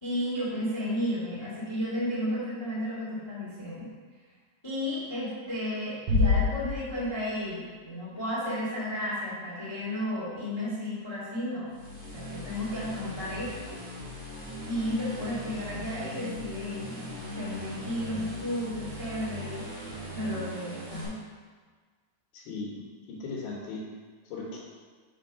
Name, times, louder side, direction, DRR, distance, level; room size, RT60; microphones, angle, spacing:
voice 1, 0.0-3.9 4.6-11.7 12.1-13.7 14.7-17.1 17.3-19.6 20.1-21.2, left 1 dB, 20° left, -9 dB, 0.8 m, -33 dB
sound 1, 6.1-7.5, left 4 dB, 80° right, 3.0 m, -26 dB
sound 2, 11.7-21.1, equal, 30° right, 1.4 m, -40 dB
voice 2, 22.3-23.8 24.3-24.6, left 3 dB, 75° left, -6 dB, 2.7 m, -38 dB
7.1 x 3.6 x 5.4 m, 1.5 s
omnidirectional pair, 4.4 m